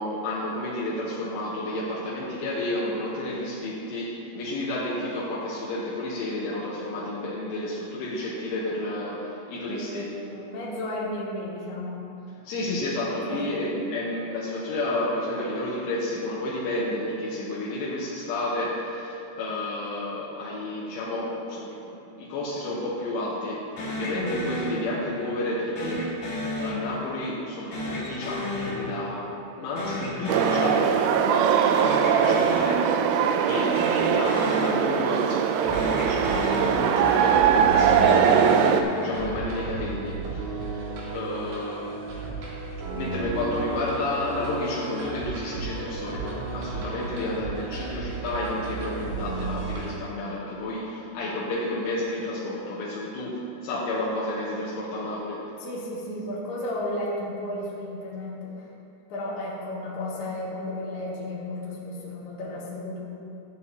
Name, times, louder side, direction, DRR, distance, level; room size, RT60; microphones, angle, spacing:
voice 1, 0.0-10.1 12.4-42.0 42.9-55.5, left 1 dB, 80° left, -6 dB, 3.3 m, -31 dB
voice 2, 9.6-12.0 13.1-13.6 55.6-58.7 59.1-63.1, left 1 dB, 60° left, -6 dB, 3.4 m, -33 dB
sound 1, 23.8-25.3 25.7-27.3 27.7-29.5 29.7-31.3 31.6-33.3 33.7-35.5 35.7-37.3 37.7-39.4, left 1 dB, 45° left, 2.6 m, -32 dB
sound 2, 30.3-38.8, right 8 dB, 85° right, 3.0 m, -21 dB
sound 3, 35.6-50.0, right 3 dB, 60° right, 3.4 m, -34 dB
15.5 x 8.2 x 2.8 m, 2.7 s
omnidirectional pair, 5.9 m